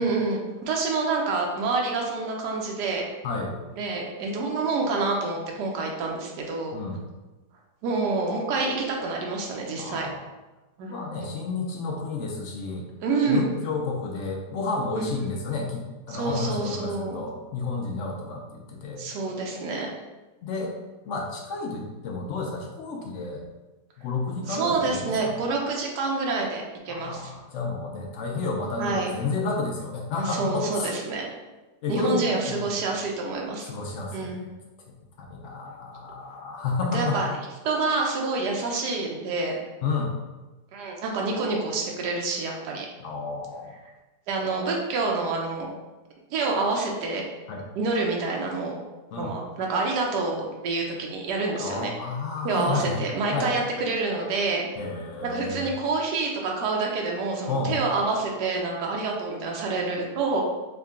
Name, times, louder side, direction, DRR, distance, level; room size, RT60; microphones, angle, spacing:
voice 1, 0.0-3.0 3.8-6.7 7.8-10.1 10.8-11.0 13.0-13.5 14.9-15.4 16.1-17.2 19.0-19.9 24.5-27.3 28.8-29.1 30.2-31.3 31.9-33.7 34.1-34.4 36.9-37.3 37.6-39.6 40.7-42.9 44.3-45.7 46.3-47.3 47.8-48.8 49.2-51.9 52.4-54.7 55.2-60.4, right 3 dB, 90° right, 0 dB, 1.2 m, -27 dB
voice 2, 3.2-3.6 6.7-7.0 9.8-10.2 10.9-12.9 13.3-19.0 20.4-20.7 21.0-23.4 24.0-25.4 26.9-30.9 31.8-32.6 33.6-34.3 35.2-37.2 39.8-40.1 43.0-43.7 47.5-47.6 49.1-49.3 51.6-53.0 53.3-53.5 54.8-55.7 57.5-57.8, left 3 dB, 70° left, 0 dB, 0.7 m, -31 dB
3.7 x 2.2 x 3.5 m, 1.1 s
omnidirectional pair, 1.7 m